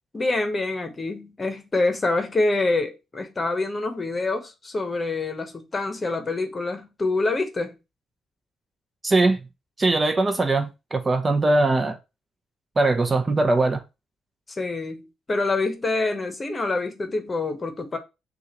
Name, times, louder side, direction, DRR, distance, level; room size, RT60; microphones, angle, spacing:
voice 1, 0.1-7.7 14.5-18.0, left 2 dB, 30° left, 1.0 m, -26 dB
voice 2, 9.0-9.4 9.8-12.0 12.8-13.8, right 2 dB, 25° right, 0.8 m, -21 dB
6.3 x 2.5 x 3.0 m
cardioid pair, 90°, 0 cm